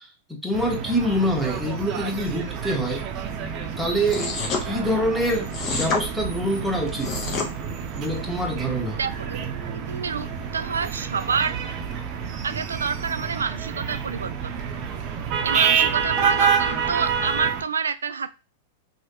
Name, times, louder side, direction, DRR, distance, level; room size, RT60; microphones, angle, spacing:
voice 1, 0.3-3.0 3.8-7.1 8.0-9.0, equal, ahead, 0 dB, 1.0 m, -25 dB
sound 1, 0.5-17.6, right 7 dB, 40° right, 0.6 m, -28 dB
sound 2, 4.1-4.6 5.5-6.0 6.9-7.5, left 4 dB, 35° left, 0.8 m, -27 dB
voice 2, 9.0-10.3 10.5-11.6 12.4-14.3 15.4-18.3, right 6 dB, 85° right, 11 dB, 0.3 m, -28 dB
3.1 x 2.4 x 2.9 m, 0.29 s
hypercardioid pair, 105°, 0 cm